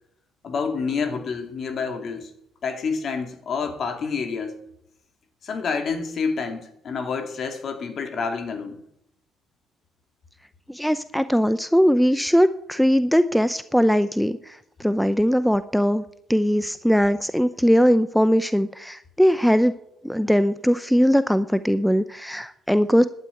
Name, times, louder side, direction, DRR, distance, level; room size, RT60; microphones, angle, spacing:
voice 1, 0.4-2.3 2.6-4.6 5.4-8.8, left 5 dB, 50° left, 6 dB, 2.6 m, -28 dB
voice 2, 10.7-16.0 16.3-19.7 20.0-23.1, equal, ahead, 13 dB, 0.6 m, -20 dB
11.5 x 9.1 x 9.3 m, 0.76 s
cardioid pair, 90°, 0 cm